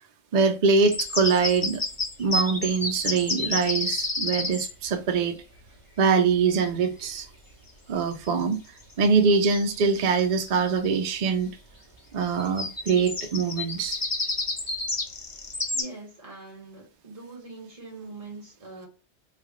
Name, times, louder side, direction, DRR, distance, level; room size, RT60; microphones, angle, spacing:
voice 1, 0.3-1.8 2.2-5.4 6.0-7.3 7.9-8.6 9.0-11.5 12.1-14.0, right 5 dB, 55° right, 0.5 m, -23 dB
sound 1, 0.7-4.7 8.1-8.3 8.8-9.2 9.5-9.6 9.9-11.0 12.4-15.8, left 2 dB, 20° left, 0.6 m, -30 dB
voice 2, 15.7-18.9, right 3 dB, 30° right, 1.4 m, -42 dB
3.3 x 2.3 x 3.6 m
omnidirectional pair, 1.3 m